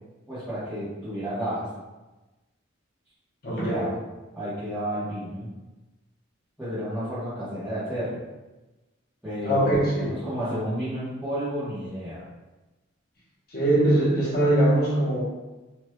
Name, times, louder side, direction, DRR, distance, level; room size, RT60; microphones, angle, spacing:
voice 1, 0.3-1.7 3.5-4.0 4.3-5.5 6.6-8.2 9.2-12.2, equal, 5° right, -17 dB, 1.1 m, -31 dB
voice 2, 3.4-3.9 9.4-10.1 13.5-15.2, right 1 dB, 50° left, -7 dB, 0.9 m, -22 dB
3.1 x 3.1 x 2.2 m, 1.1 s
head